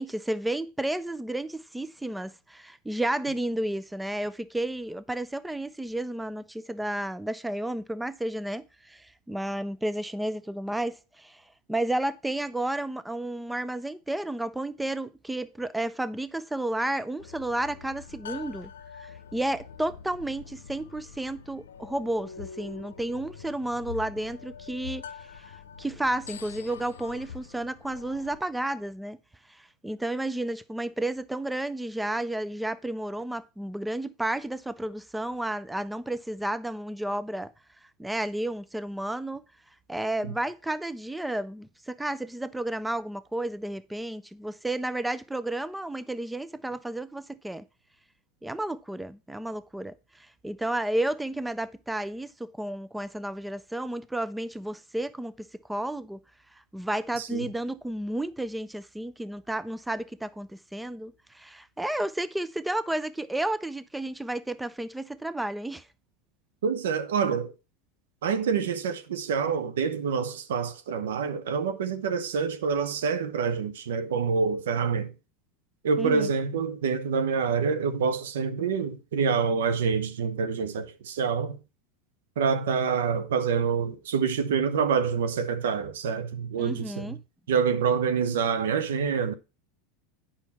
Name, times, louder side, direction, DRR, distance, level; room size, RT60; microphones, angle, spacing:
voice 1, 0.0-11.4 11.7-18.7 19.0-25.1 25.8-29.2 29.6-37.5 38.0-39.4 39.9-47.6 48.4-50.0 50.4-56.2 56.7-65.8 76.0-76.3 86.6-87.2, right 1 dB, 5° right, 0.5 m, -32 dB
sound 1, 17.2-28.4, left 6 dB, 90° left, 0.6 m, -44 dB
voice 2, 57.2-57.5 66.6-67.5 68.2-75.1 75.8-81.6 82.4-87.2 87.5-89.3, right 6 dB, 80° right, 0.9 m, -27 dB
8.9 x 5.7 x 4.2 m
hypercardioid pair, 105°, 0 cm